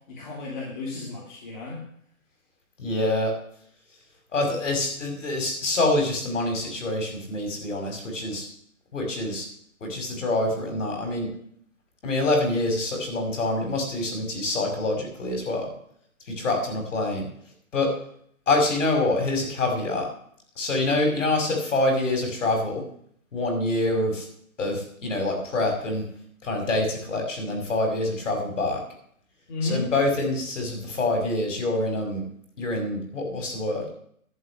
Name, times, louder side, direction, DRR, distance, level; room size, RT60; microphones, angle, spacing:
voice 1, 0.1-1.8 29.5-29.9, left 3 dB, 35° left, -4 dB, 3.1 m, -32 dB
voice 2, 2.8-3.3 4.3-8.5 8.9-9.5 9.8-11.3 12.0-15.7 16.3-17.3 17.7-17.9 18.5-20.1 20.6-22.8 23.3-24.3 24.6-26.1 26.4-28.8 29.6-32.2 32.6-33.8, left 2 dB, 60° left, 3 dB, 5.8 m, -26 dB
12.0 x 6.4 x 9.2 m, 0.64 s
hypercardioid pair, 165°, 42 cm